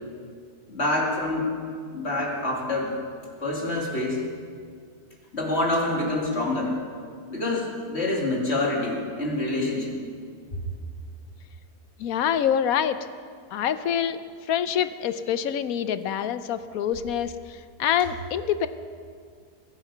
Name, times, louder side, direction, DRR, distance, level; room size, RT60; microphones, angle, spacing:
voice 1, 0.7-1.6 1.9-2.9 3.4-4.2 5.3-6.8 7.3-10.0, left 2 dB, 40° left, -2 dB, 2.8 m, -26 dB
voice 2, 12.0-13.0 13.5-14.2 14.5-18.7, left 9 dB, 65° left, 12 dB, 1.0 m, -26 dB
22.0 x 9.7 x 5.5 m, 2.1 s
omnidirectional pair, 1.7 m